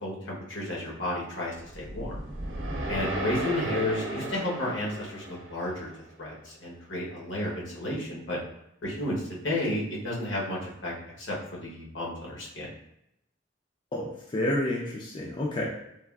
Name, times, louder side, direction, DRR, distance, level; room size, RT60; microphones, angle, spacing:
voice 1, 0.0-2.2 2.9-5.9 6.2-8.4 8.8-12.7, left 1 dB, 70° left, -4 dB, 0.9 m, -32 dB
sound 1, 1.7-6.0, right 1 dB, 70° right, 0.6 m, -34 dB
voice 2, 13.9-15.7, left 1 dB, 25° left, -3 dB, 0.4 m, -29 dB
3.4 x 2.3 x 2.3 m, 0.82 s
head